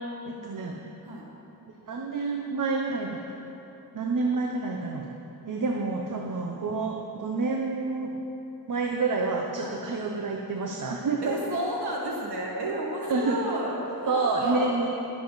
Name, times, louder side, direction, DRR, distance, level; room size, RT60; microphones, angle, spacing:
voice 1, 0.2-0.8 1.8-3.2 3.9-5.1 5.5-8.3 8.7-11.4 13.1-13.4 14.0-14.9, right 3 dB, 50° right, 1 dB, 1.0 m, -28 dB
voice 2, 11.2-14.7, right 1 dB, 75° right, -2 dB, 2.0 m, -32 dB
20.0 x 7.5 x 4.1 m, 2.9 s
cardioid pair, 70°, 39 cm